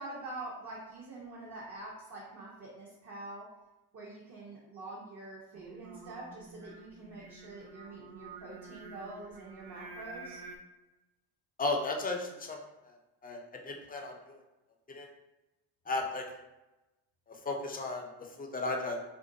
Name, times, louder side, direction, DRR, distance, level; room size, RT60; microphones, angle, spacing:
voice 1, 0.0-3.5 3.9-10.4, right 2 dB, 40° right, -4 dB, 0.7 m, -45 dB
Singing, 5.5-10.6, right 3 dB, 85° right, 0.6 m, -49 dB
voice 2, 11.6-12.6 12.8-12.9 13.2-14.4 14.9-15.1 15.9-16.2 17.3-19.0, left 2 dB, 20° left, 2 dB, 0.4 m, -35 dB
2.5 x 2.1 x 2.6 m, 1.0 s
supercardioid pair, 65°, 48 cm